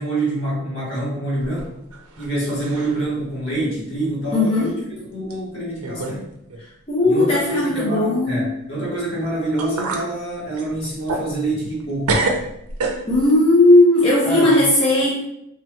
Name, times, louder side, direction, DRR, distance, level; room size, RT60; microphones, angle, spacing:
voice 1, 0.0-1.8 2.2-6.3 7.0-12.2 14.2-14.7, right 1 dB, 60° left, -6 dB, 1.4 m, -26 dB
sound 1, 1.4-2.3 2.6-3.1 3.5-3.6 4.5-4.6 5.3-5.4 5.8-6.2 6.5-6.6 9.1-9.2 9.6-10.1 10.5-11.8 12.1-13.4, right 3 dB, 85° right, 0.5 m, -26 dB
voice 2, 4.3-4.7 6.9-8.4 13.1-15.2, left 2 dB, 25° left, -7 dB, 0.5 m, -16 dB
3.3 x 2.9 x 2.2 m, 0.79 s
head